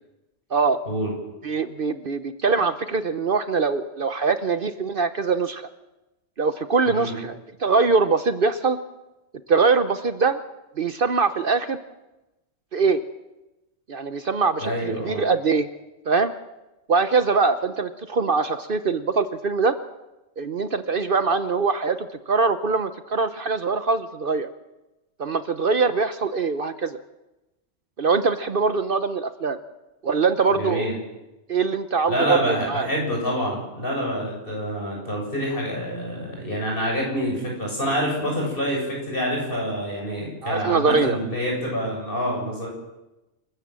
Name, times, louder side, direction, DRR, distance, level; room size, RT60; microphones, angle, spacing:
voice 1, 1.4-5.7 6.4-8.8 9.5-10.4 10.8-11.8 12.7-13.0 13.9-15.7 16.1-16.3 16.9-19.8 20.4-24.5 25.2-27.0 28.0-29.6 30.0-30.9 31.5-32.9 40.4-41.2, right 4 dB, 55° right, 11 dB, 1.0 m, -23 dB
voice 2, 6.9-7.2 14.6-15.2 30.6-31.0 32.1-42.7, equal, 50° left, -1 dB, 7.4 m, -27 dB
27.5 x 14.0 x 7.6 m, 1.0 s
omnidirectional pair, 1.2 m